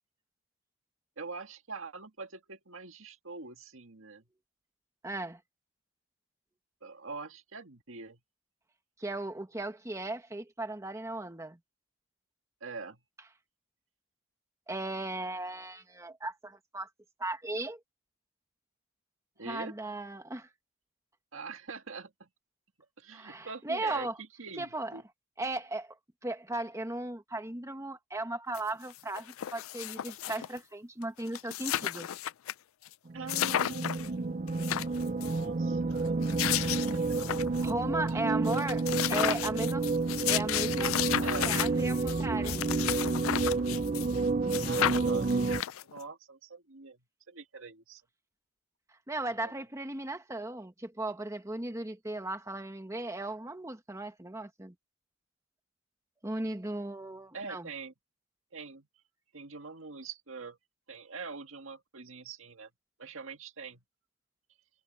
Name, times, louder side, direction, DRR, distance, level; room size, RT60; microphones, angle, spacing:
voice 1, 1.2-4.2 6.8-8.2 12.6-13.0 19.4-19.8 21.3-22.3 23.0-25.0 33.1-36.2 36.6-37.0 37.3-37.5 37.9-38.2 41.2-41.5 44.6-45.3 45.8-48.0 49.4-49.5 57.3-57.9 58.5-58.9 59.3-60.6 60.9-62.7 63.0-63.8, right 4 dB, 75° right, 1.9 m, -44 dB
voice 2, 5.0-5.4 9.0-11.6 14.7-16.9 17.2-17.8 19.4-20.5 23.1-24.2 24.6-25.0 25.4-25.9 26.2-32.1 37.6-38.8 39.1-39.9 40.3-41.0 41.5-42.6 49.1-54.7 56.2-57.7, right 2 dB, 15° right, 1.4 m, -36 dB
sound 1, 28.5-28.6 28.9-30.6 31.0-31.1 31.3-32.5 32.9-33.0 33.3-34.1 34.5-35.4 36.1-37.7 38.1-38.2 38.5-44.2 44.5-46.0, left 11 dB, 85° left, 0.4 m, -33 dB
sound 2, 33.1-45.6, right 3 dB, 35° right, 0.5 m, -30 dB
head